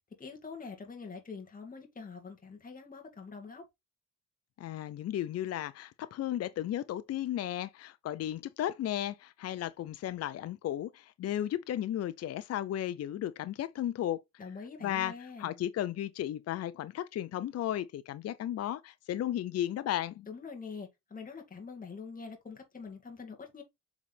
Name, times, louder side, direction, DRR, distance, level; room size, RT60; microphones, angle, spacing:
voice 1, 0.2-3.7 14.4-15.6 20.3-23.6, left 5 dB, 30° left, 2.0 m, -45 dB
voice 2, 4.6-14.2 14.8-15.1 15.4-20.3, left 12 dB, 55° left, 0.5 m, -34 dB
7.2 x 4.1 x 3.3 m
cardioid pair, 90°, 30 cm